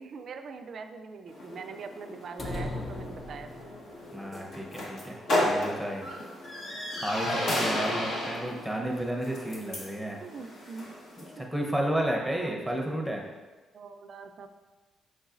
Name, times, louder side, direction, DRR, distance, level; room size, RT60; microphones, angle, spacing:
voice 1, 0.0-3.7 10.2-10.9 12.1-12.5 13.7-14.5, right 5 dB, 55° right, 7 dB, 0.4 m, -43 dB
sound 1, 1.3-11.4, left 1 dB, 65° left, 1.2 m, -34 dB
sound 2, 2.4-4.0, left 2 dB, 35° left, 0.5 m, -37 dB
voice 2, 4.1-6.1 7.0-10.2 11.4-13.2, right 1 dB, ahead, -1 dB, 0.7 m, -32 dB
5.2 x 3.9 x 2.5 m, 1.3 s
cardioid pair, 90°, 0 cm